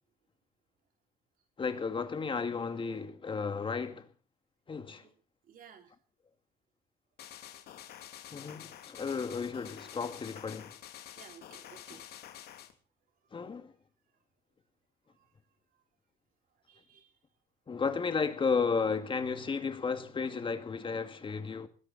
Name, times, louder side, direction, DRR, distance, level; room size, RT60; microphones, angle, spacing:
voice 1, 1.6-4.1 4.7-5.0 8.3-10.7 11.9-12.0 13.3-13.7 17.7-21.7, left 5 dB, 30° left, 2.1 m, -33 dB
voice 2, 5.5-5.9 7.5-8.0 11.2-12.1 13.4-13.7 16.7-17.1, right 8 dB, 55° right, 3.7 m, -56 dB
sound 1, 7.2-12.7, left 11 dB, 70° left, 2.8 m, -49 dB
20.5 x 16.5 x 4.2 m
cardioid pair, 110°, 17 cm